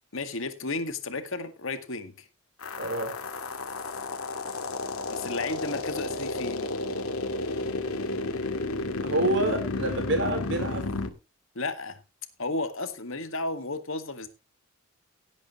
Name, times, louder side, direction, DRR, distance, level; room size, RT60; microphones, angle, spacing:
voice 1, 0.1-2.3 5.1-6.7 11.5-12.0 12.4-14.3, left 3 dB, 65° left, 1.9 m, -33 dB
sound 1, 2.6-11.1, left 2 dB, 85° left, 2.0 m, -32 dB
voice 2, 2.8-3.2 9.0-10.9, right 1 dB, 55° right, 4.1 m, -27 dB
17.5 x 8.7 x 3.1 m
head